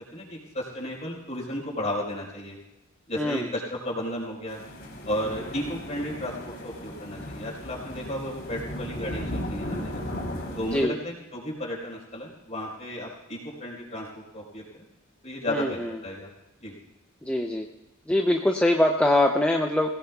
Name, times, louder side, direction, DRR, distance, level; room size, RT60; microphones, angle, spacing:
voice 1, 0.1-2.6 3.1-4.6 5.0-10.0 10.6-14.8 15.2-16.3 16.6-16.7, left 1 dB, 30° left, -4 dB, 4.5 m, -33 dB
sound 1, 4.5-10.8, equal, 50° left, 3.6 m, -36 dB
voice 2, 15.5-15.9 17.3-17.7 18.1-19.9, left 1 dB, 5° left, 2 dB, 0.6 m, -23 dB
24.0 x 17.0 x 2.4 m, 0.94 s
head